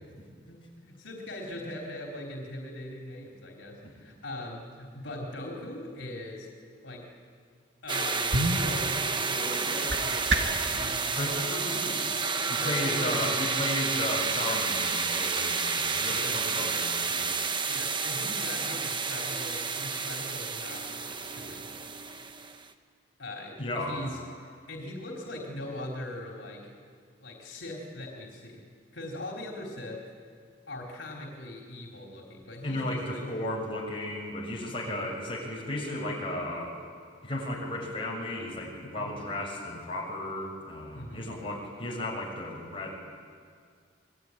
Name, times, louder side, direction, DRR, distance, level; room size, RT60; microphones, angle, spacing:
voice 1, 0.0-6.5 6.8-7.1 7.8-9.0 9.2-11.4 12.5-13.5 16.1-16.4 17.6-21.7 23.2-24.2 24.7-26.7 27.2-28.6 28.9-30.1 30.7-33.2 34.8-35.1 39.0-39.2 40.9-41.2, left 1 dB, 80° left, 0 dB, 4.0 m, -40 dB
sound 1, 7.8-10.7, right 1 dB, 85° right, 2.3 m, -31 dB
sound 2, 7.9-22.7, right 4 dB, 25° right, 1.2 m, -30 dB
voice 2, 11.1-17.3 23.6-24.1 32.6-36.8 37.2-43.0, left 1 dB, 30° left, -2 dB, 6.7 m, -34 dB
27.5 x 22.0 x 9.9 m, 2.1 s
head